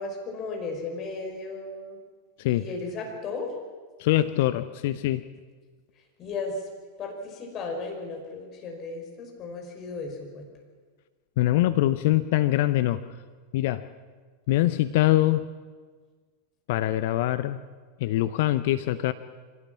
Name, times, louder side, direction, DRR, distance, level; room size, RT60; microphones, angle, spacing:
voice 1, 0.0-2.0 2.5-3.5 6.2-6.6 7.0-10.5, left 3 dB, 30° left, 2 dB, 5.4 m, -35 dB
voice 2, 4.0-5.2 11.4-13.0 13.5-13.9 14.5-15.4 16.7-17.6 18.0-19.1, left 15 dB, 50° left, 12 dB, 0.8 m, -23 dB
25.5 x 17.0 x 7.4 m, 1.5 s
figure-of-eight pair, 90°, 0 cm